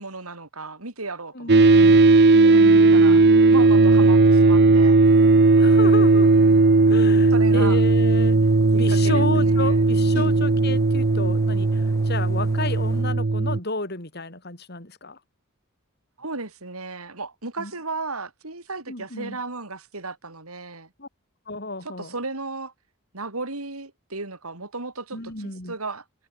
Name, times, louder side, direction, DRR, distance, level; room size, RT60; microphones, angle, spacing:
voice 1, 0.0-1.9 2.4-3.2 3.5-5.0 7.3-7.8 8.7-9.9 10.1-10.4 16.2-20.9 21.8-22.7 23.1-26.0, right 3 dB, 90° right, 5.0 m, -35 dB
voice 2, 1.3-2.0 2.3-3.2 5.6-6.3 6.9-8.4 8.8-15.2 17.6-17.7 18.9-19.4 21.0-21.1 21.5-22.1 25.1-25.7, left 2 dB, 50° left, 3.9 m, -32 dB
sound 1, 1.5-13.6, right 3 dB, 50° right, 0.7 m, -16 dB
sound 2, 5.0-13.0, left 1 dB, 15° left, 2.4 m, -45 dB
head